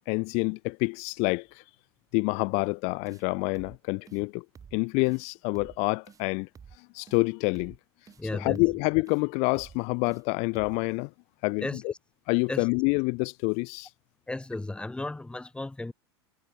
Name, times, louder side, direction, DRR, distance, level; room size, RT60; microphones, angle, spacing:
voice 1, 0.1-1.6 2.1-4.4 4.7-6.5 6.8-7.8 8.3-11.1 11.4-11.9 12.3-13.9, left 33 dB, 55° left, 1.1 m, -27 dB
sound 1, 3.1-3.3 3.6-3.8 4.1-4.2 4.6-4.8 5.1-5.2 5.6-5.8 6.1-6.2 6.6-6.8 7.1-7.2 7.6-7.8 8.1-8.2 8.6-8.8 9.1-9.2 9.6-9.8 10.1-10.2 10.6-10.8, right 7 dB, 25° right, 2.9 m, -50 dB
voice 2, 8.2-8.6 11.6-11.8 12.5-12.6 14.3-15.9, left 2 dB, 5° left, 1.5 m, -34 dB
hypercardioid pair, 100°, 14 cm